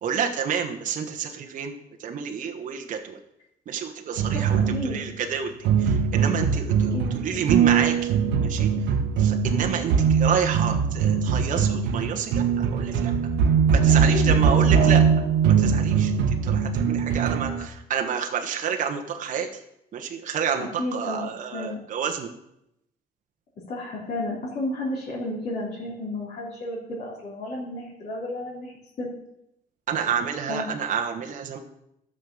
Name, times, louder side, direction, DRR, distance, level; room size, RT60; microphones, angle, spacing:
voice 1, 0.0-1.7 2.0-3.2 3.7-8.1 8.4-8.7 9.2-13.1 13.7-15.0 15.4-19.5 19.9-22.3 29.9-31.6, right 7 dB, 50° right, 3 dB, 1.3 m, -29 dB
sound 1, 4.2-5.0 5.6-17.6, right 6 dB, 85° right, 1.2 m, -21 dB
voice 2, 4.3-5.1 6.9-7.4 14.1-14.5 14.8-14.9 20.8-21.8 23.7-28.7 29.0-29.1 30.5-30.7, left 2 dB, 45° left, -6 dB, 3.8 m, -32 dB
12.0 x 6.7 x 7.1 m, 0.81 s
cardioid pair, 110°, 17 cm